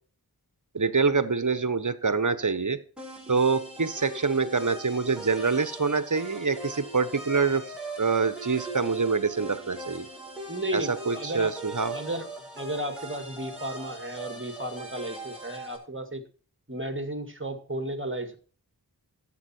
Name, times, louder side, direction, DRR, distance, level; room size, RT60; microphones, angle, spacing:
voice 1, 0.7-2.8 3.3-7.6 8.0-10.1 10.7-11.9, right 4 dB, 50° right, 14 dB, 1.1 m, -25 dB
sound 1, 3.0-15.8, right 1 dB, ahead, 6.5 m, -40 dB
voice 2, 10.5-11.6 11.9-12.3 12.6-16.2 16.7-18.4, right 1 dB, 30° right, 8 dB, 2.1 m, -34 dB
13.5 x 8.6 x 4.5 m, 0.38 s
wide cardioid pair, 55°, 39 cm